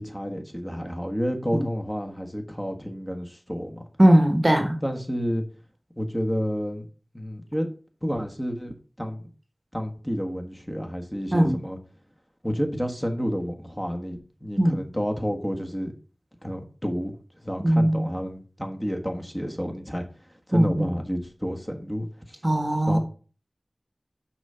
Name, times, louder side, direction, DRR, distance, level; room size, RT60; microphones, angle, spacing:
voice 1, 0.0-3.8 4.8-5.4 6.0-6.9 7.1-7.7 8.0-9.3 9.7-11.8 12.4-15.9 16.4-17.1 17.4-20.1 20.5-22.4 22.8-23.0, equal, 10° left, 3 dB, 1.4 m, -30 dB
voice 2, 4.0-4.8 11.3-11.6 14.6-14.8 17.6-18.1 20.5-20.9 22.4-23.0, right 1 dB, 30° right, 6 dB, 1.2 m, -19 dB
6.1 x 4.9 x 5.5 m, 0.37 s
wide cardioid pair, 55°, 0 cm